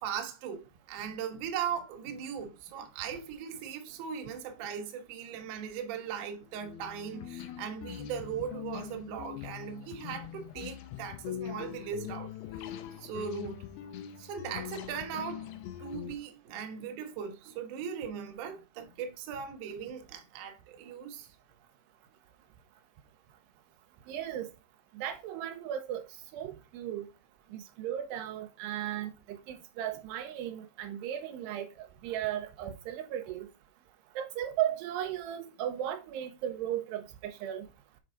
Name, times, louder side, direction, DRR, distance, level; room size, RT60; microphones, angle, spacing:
voice 1, 0.0-12.7 13.0-13.6 14.2-21.3, right 7 dB, 65° right, 2.1 m, -39 dB
sound 1, 6.5-16.2, left 11 dB, 80° left, 2.5 m, -42 dB
voice 2, 24.1-24.5 24.9-26.0 26.3-27.1 27.5-33.5 34.2-37.7, right 11 dB, 85° right, 2.9 m, -36 dB
6.9 x 4.7 x 3.7 m
omnidirectional pair, 4.8 m